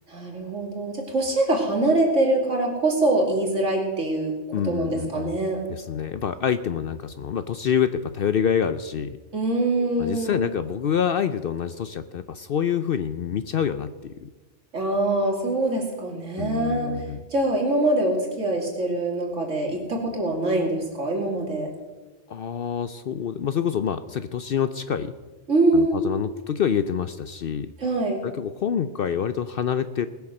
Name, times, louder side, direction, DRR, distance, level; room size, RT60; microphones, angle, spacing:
voice 1, 0.1-4.3 4.6-5.6 9.3-10.5 14.7-16.9 17.3-21.7 25.5-26.0 27.8-28.2, right 2 dB, 75° right, 0 dB, 3.0 m, -24 dB
voice 2, 4.5-5.4 5.7-9.2 10.0-14.3 16.4-17.2 22.3-25.1 25.7-27.7 28.2-30.1, left 8 dB, 60° left, 12 dB, 0.6 m, -26 dB
19.5 x 6.9 x 6.5 m, 1.2 s
omnidirectional pair, 1.3 m